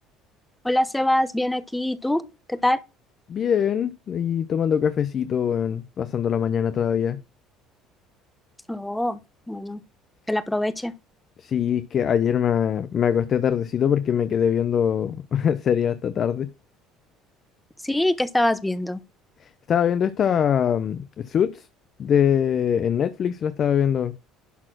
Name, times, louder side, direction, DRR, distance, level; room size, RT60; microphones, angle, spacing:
voice 1, 0.6-2.2 2.5-2.8 8.7-9.2 9.5-9.8 10.3-10.9 17.8-19.0, left 1 dB, 5° left, 0.9 m, -24 dB
voice 2, 3.3-7.2 11.4-16.5 19.7-21.7 22.0-24.1, left 8 dB, 40° left, 0.6 m, -23 dB
11.0 x 4.2 x 6.0 m
cardioid pair, 115°, 0 cm